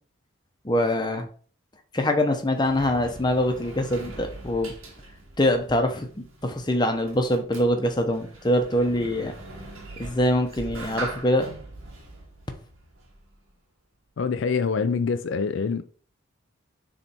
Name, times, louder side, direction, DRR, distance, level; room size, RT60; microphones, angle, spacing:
voice 1, 0.6-1.3 1.9-4.7 5.4-9.3 10.0-11.5, left 1 dB, 20° left, 0.8 m, -24 dB
Sliding door, 2.2-13.5, right 2 dB, 85° right, 1.7 m, -42 dB
voice 2, 14.2-15.8, left 5 dB, 65° left, 0.4 m, -25 dB
6.9 x 3.3 x 4.3 m
head